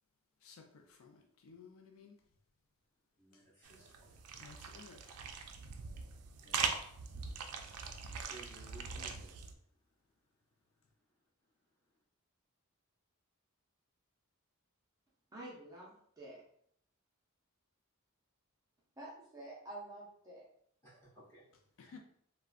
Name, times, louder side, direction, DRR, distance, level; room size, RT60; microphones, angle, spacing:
voice 1, 0.4-2.2 4.4-5.2 21.8-22.0, left 5 dB, 65° left, 3 dB, 0.3 m, -56 dB
voice 2, 3.2-4.2 6.4-6.9 8.2-9.4 20.8-21.4 21.8-22.0, right 2 dB, 15° left, -9 dB, 1.4 m, -58 dB
sound 1, 3.6-9.5, right 6 dB, 85° right, 0.4 m, -41 dB
voice 3, 15.3-16.4 19.0-20.4, right 1 dB, 15° right, -5 dB, 0.5 m, -49 dB
3.5 x 2.1 x 2.4 m, 0.65 s
head